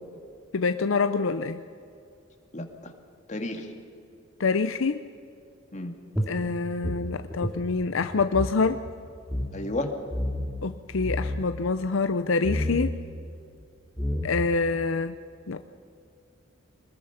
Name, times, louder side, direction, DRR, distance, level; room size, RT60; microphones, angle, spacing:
voice 1, 0.5-1.6 4.4-5.0 6.3-8.8 10.6-13.0 14.2-15.2 15.5-15.6, left 4 dB, 70° left, 10 dB, 0.6 m, -26 dB
voice 2, 2.5-2.9 3.3-3.7 5.7-5.9 9.5-9.9, left 2 dB, 35° left, 4 dB, 2.1 m, -32 dB
sound 1, 6.1-8.6 8.9-9.0 9.2-9.5 10.1-10.6 10.9-11.5 12.4-12.8 13.6-13.7 14.0-14.6, left 1 dB, ahead, 2.1 m, -30 dB
24.5 x 20.5 x 5.8 m, 2.5 s
head